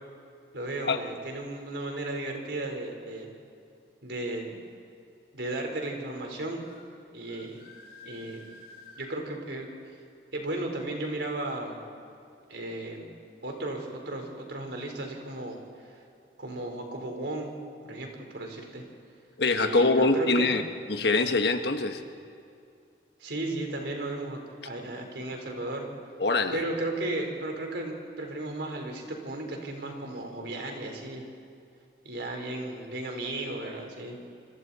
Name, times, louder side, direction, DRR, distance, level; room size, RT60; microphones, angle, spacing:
voice 1, 0.5-3.3 4.0-4.6 5.3-6.7 7.1-7.6 8.0-8.4 9.0-9.7 10.3-11.8 12.5-13.1 13.4-16.0 16.4-17.5 17.8-18.8 19.6-20.5 23.2-25.9 26.5-31.3 32.0-34.2, right 2 dB, 80° right, 2 dB, 4.1 m, -35 dB
sound 1, 6.6-6.8 7.3-9.1, left 3 dB, 55° left, 7.0 m, -51 dB
voice 2, 19.4-20.6 20.9-22.0 26.2-26.6, left 3 dB, 70° left, 6 dB, 1.3 m, -24 dB
26.5 x 26.0 x 4.2 m, 2.5 s
head